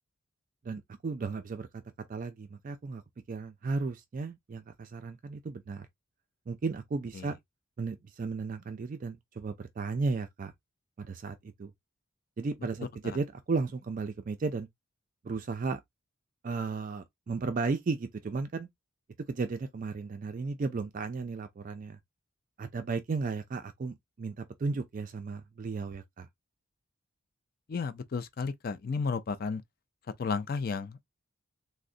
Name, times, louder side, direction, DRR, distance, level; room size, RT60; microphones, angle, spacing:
voice 1, 0.6-1.7 2.1-3.0 3.3-5.9 6.5-7.4 7.8-10.5 11.0-11.7 12.4-14.7 15.2-15.8 16.4-18.7 19.3-22.0 22.6-26.3, right 4 dB, 35° right, 0.3 m, -34 dB
voice 2, 27.7-29.6 30.2-31.0, left 5 dB, 40° left, 0.4 m, -33 dB
3.7 x 2.1 x 2.5 m
head